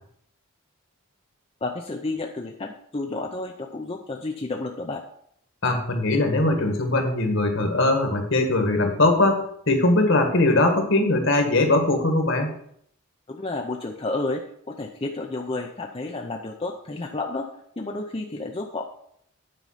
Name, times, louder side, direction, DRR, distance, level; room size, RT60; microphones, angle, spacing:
voice 1, 1.6-5.0 13.3-17.5 17.8-18.9, left 2 dB, 25° left, 2 dB, 0.6 m, -31 dB
voice 2, 5.6-12.5, left 2 dB, 60° left, 4 dB, 1.6 m, -21 dB
9.2 x 5.4 x 5.6 m, 0.69 s
head